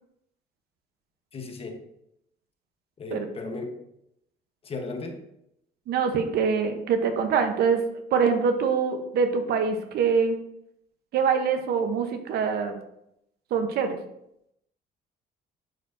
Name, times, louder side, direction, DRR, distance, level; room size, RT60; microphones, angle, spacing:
voice 1, 1.3-1.8 3.0-3.8 4.6-5.2, left 3 dB, 35° left, 4 dB, 1.2 m, -35 dB
voice 2, 5.9-10.4 11.1-12.8 13.5-14.0, right 6 dB, 70° right, 7 dB, 1.0 m, -24 dB
10.5 x 4.6 x 2.7 m, 0.78 s
cardioid pair, 110°, 17 cm